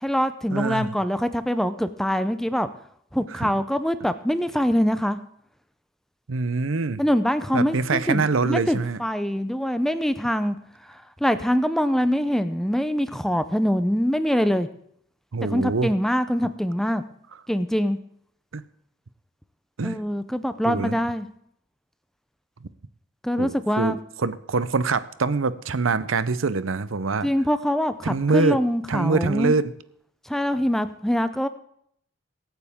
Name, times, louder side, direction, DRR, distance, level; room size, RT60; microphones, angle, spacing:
voice 1, 0.0-2.7 3.1-5.2 7.0-10.6 11.2-14.7 15.5-17.0 17.5-18.0 19.8-21.3 23.2-24.0 27.2-29.5 30.3-31.5, equal, ahead, 11 dB, 0.5 m, -24 dB
voice 2, 0.5-0.9 3.3-3.5 6.3-7.0 7.5-9.0 15.3-15.9 18.5-18.6 19.8-20.0 20.6-21.0 22.6-22.7 23.4-27.3 28.0-28.6 28.9-29.7, right 4 dB, 90° right, 15 dB, 0.7 m, -24 dB
23.0 x 9.1 x 3.6 m, 0.68 s
head